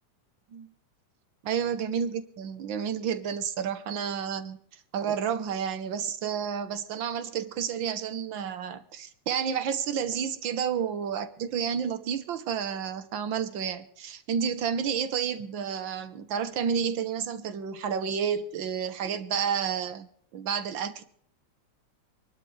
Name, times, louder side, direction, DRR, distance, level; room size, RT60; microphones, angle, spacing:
voice 1, 1.4-4.6 4.9-21.0, right 7 dB, 70° right, 11 dB, 1.1 m, -30 dB
25.0 x 12.0 x 3.3 m, 0.64 s
omnidirectional pair, 3.3 m